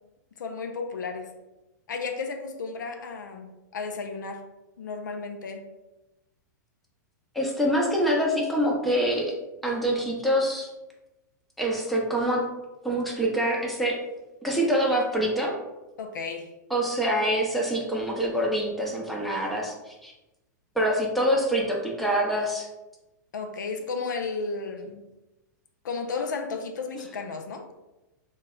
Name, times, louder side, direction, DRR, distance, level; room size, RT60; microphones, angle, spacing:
voice 1, 0.4-1.3 1.9-4.4 4.8-5.7 16.0-16.5 23.3-25.0 25.8-27.7, left 4 dB, 85° left, 5 dB, 0.4 m, -33 dB
voice 2, 7.3-9.3 9.6-10.7 11.6-12.5 12.8-14.0 14.4-15.5 16.7-20.1 20.8-22.7, equal, ahead, -3 dB, 0.6 m, -25 dB
2.2 x 2.0 x 3.5 m, 1.0 s
hypercardioid pair, 115°, 10 cm